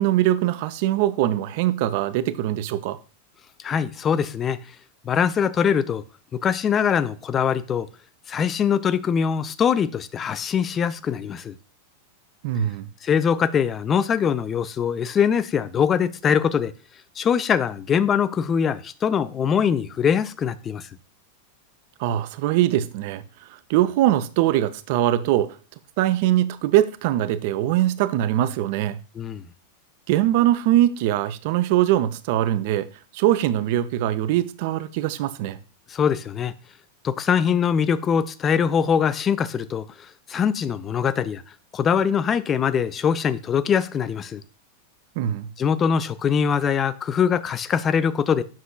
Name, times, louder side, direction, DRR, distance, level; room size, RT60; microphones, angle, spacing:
voice 1, 0.0-3.0 12.4-12.9 22.0-23.2 23.5-25.6 26.0-29.0 30.1-32.9 33.1-35.6 45.2-45.5, right 13 dB, 50° right, 0.4 m, -22 dB
voice 2, 3.6-4.6 5.0-6.0 6.3-7.9 8.3-11.5 13.0-16.7 17.2-20.9 29.2-29.4 35.9-36.5 37.0-41.4 41.7-44.4 45.6-48.4, left 7 dB, 25° left, 0.4 m, -22 dB
7.4 x 5.8 x 2.3 m
figure-of-eight pair, 90°, 0 cm